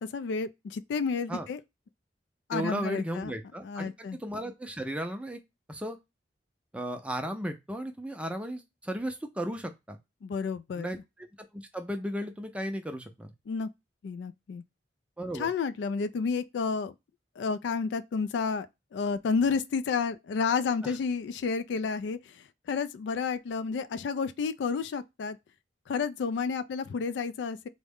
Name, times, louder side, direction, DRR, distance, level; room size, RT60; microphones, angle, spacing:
voice 1, 0.0-1.6 2.5-3.3 3.6-4.2 10.2-10.9 13.5-13.7 14.0-14.6 15.3-16.9 17.4-18.7 18.9-25.4 25.9-27.7, left 5 dB, 70° left, 0.3 m, -31 dB
voice 2, 2.5-5.4 5.7-6.0 6.7-10.0 10.7-13.3 15.2-15.5 20.8-20.9, equal, 5° right, 0.4 m, -35 dB
3.5 x 2.1 x 3.5 m
head